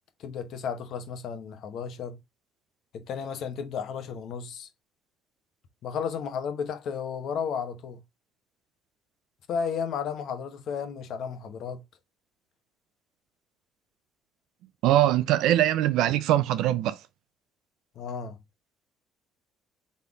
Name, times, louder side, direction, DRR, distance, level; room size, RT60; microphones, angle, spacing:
voice 1, 0.2-2.2 2.9-4.7 5.8-8.0 9.5-11.8 18.0-18.4, left 6 dB, 65° left, 1.0 m, -33 dB
voice 2, 14.8-17.0, right 13 dB, 80° right, 0.5 m, -22 dB
4.1 x 3.6 x 3.5 m
cardioid pair, 100°, 0 cm